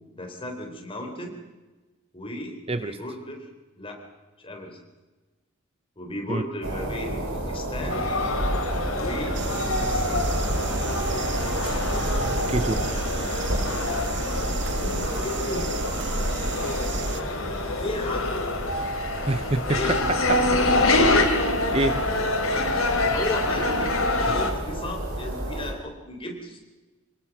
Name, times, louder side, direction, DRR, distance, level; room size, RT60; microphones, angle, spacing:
voice 1, 0.1-1.4 2.1-3.5 3.8-4.0 4.4-4.8 6.0-8.1 8.9-9.4 9.8-10.3 14.7-15.7 17.8-18.4 19.2-19.3 19.7-20.0 22.9-26.6, left 1 dB, 25° left, 2 dB, 3.9 m, -35 dB
sound 1, 6.6-25.7, right 1 dB, 80° right, 4.7 m, -32 dB
sound 2, 7.9-24.5, left 2 dB, 75° left, 3.1 m, -26 dB
sound 3, 9.3-17.2, right 2 dB, 55° right, 1.2 m, -31 dB
voice 2, 12.5-12.8 19.3-20.6 21.4-22.1 22.5-22.7 24.2-24.3, right 2 dB, 25° right, 11 dB, 0.6 m, -28 dB
25.5 x 19.5 x 6.0 m, 1.2 s
head